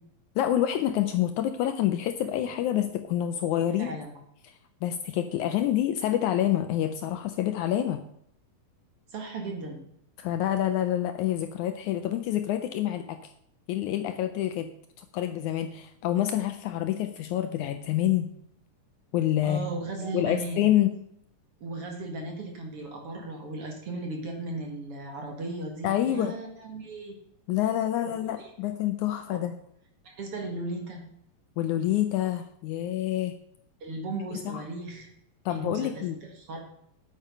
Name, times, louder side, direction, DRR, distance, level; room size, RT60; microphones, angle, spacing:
voice 1, 0.4-4.0 4.4-4.5 4.8-8.0 10.2-13.3 13.7-14.7 15.0-18.3 19.1-19.7 20.1-20.9 25.8-26.3 27.5-29.6 31.6-33.4 34.3-34.6 35.5-36.2, left 12 dB, 80° left, 9 dB, 1.8 m, -27 dB
voice 2, 3.8-4.1 9.1-9.8 19.4-20.6 21.6-27.2 28.4-28.5 29.3-29.4 30.0-31.0 33.8-35.1 35.5-36.0 36.4-36.6, right 2 dB, 50° right, 2 dB, 2.3 m, -36 dB
9.2 x 8.7 x 5.5 m, 0.72 s
omnidirectional pair, 3.9 m